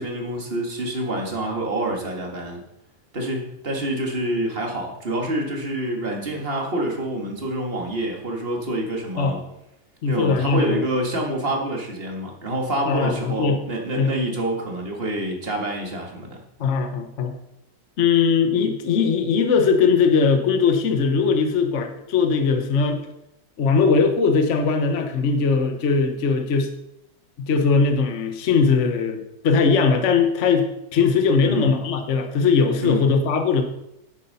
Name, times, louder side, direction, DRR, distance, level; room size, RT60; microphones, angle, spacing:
voice 1, 0.0-2.6 3.1-9.4 10.1-16.4 31.4-31.7 32.8-33.1, right 1 dB, 40° right, 1 dB, 2.1 m, -27 dB
voice 2, 10.0-10.8 12.9-13.6 14.0-14.1 16.6-17.3 18.0-23.0 23.6-26.7 27.4-33.6, left 5 dB, 50° left, 5 dB, 1.3 m, -20 dB
10.5 x 8.4 x 5.5 m, 0.84 s
omnidirectional pair, 1.6 m